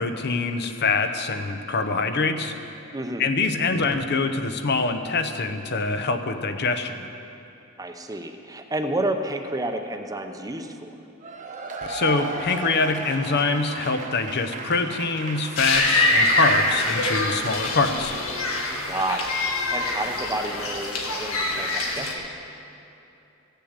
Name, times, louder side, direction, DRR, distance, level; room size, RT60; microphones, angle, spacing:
voice 1, 0.0-2.5 3.2-7.1 11.8-18.1, left 3 dB, 55° left, 7 dB, 0.8 m, -25 dB
voice 2, 2.9-3.3 7.8-10.9 18.8-22.2, right 1 dB, 15° right, 5 dB, 0.7 m, -30 dB
Cheering / Applause / Crowd, 11.2-18.9, right 3 dB, 40° right, 1.0 m, -36 dB
sound 1, 15.6-22.1, left 2 dB, 90° left, 1.6 m, -24 dB
15.5 x 6.7 x 8.1 m, 2.8 s
head